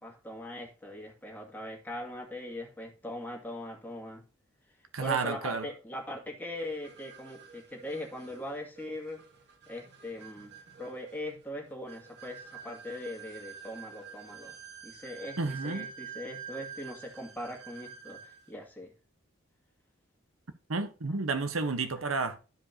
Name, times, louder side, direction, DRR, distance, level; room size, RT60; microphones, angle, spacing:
voice 1, 0.0-4.2 5.0-9.2 9.7-10.5 10.8-14.6 14.8-18.9, left 1 dB, 10° left, 2.2 m, -41 dB
voice 2, 4.9-5.6 15.4-15.9 20.7-22.4, right 4 dB, 90° right, 1.1 m, -31 dB
sound 1, 6.6-18.5, right 7 dB, 55° right, 1.8 m, -48 dB
13.5 x 5.1 x 2.8 m
head